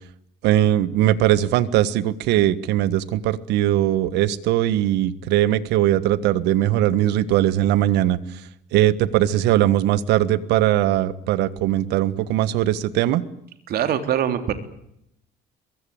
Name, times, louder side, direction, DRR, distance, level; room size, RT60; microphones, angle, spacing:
voice 1, 0.4-8.2 8.7-13.2, right 13 dB, 90° right, 16 dB, 1.5 m, -20 dB
voice 2, 13.7-14.5, right 9 dB, 65° right, 9 dB, 3.5 m, -23 dB
23.5 x 22.5 x 8.8 m, 0.77 s
cardioid pair, 110°, 17 cm